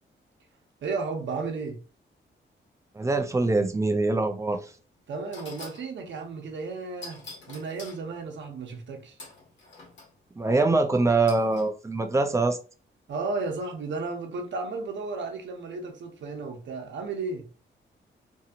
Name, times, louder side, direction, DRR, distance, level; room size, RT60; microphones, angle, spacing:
voice 1, 0.8-1.8 5.1-9.2 13.1-17.5, right 4 dB, 75° right, 0.8 m, -34 dB
voice 2, 2.9-4.7 10.4-12.6, right 3 dB, 15° right, 0.4 m, -24 dB
sound 1, 4.7-4.8 5.3-5.9 7.0-8.0 9.2-10.1 11.3-11.7, left 3 dB, 75° left, 1.1 m, -45 dB
2.7 x 2.7 x 2.4 m
wide cardioid pair, 125°, 19 cm